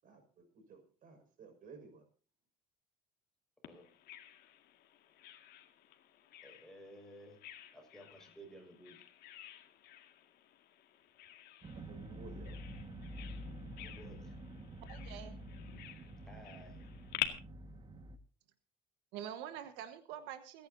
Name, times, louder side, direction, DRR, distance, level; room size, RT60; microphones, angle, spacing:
voice 1, 0.0-2.0 11.7-12.6, right 4 dB, 50° right, 6 dB, 5.9 m, -56 dB
Bird vocalization bird call bird song, 3.6-17.3, left 13 dB, 65° left, 2.1 m, -49 dB
voice 2, 6.4-7.4 7.7-9.0 13.8-14.3 16.2-16.9, equal, 5° left, 2 dB, 5.8 m, -55 dB
sound 1, 11.6-18.2, right 1 dB, 30° right, 1.7 m, -48 dB
voice 3, 14.9-15.3 19.1-20.7, right 10 dB, 90° right, 9 dB, 1.4 m, -45 dB
29.0 x 10.5 x 2.8 m, 0.37 s
cardioid pair, 125°, 17 cm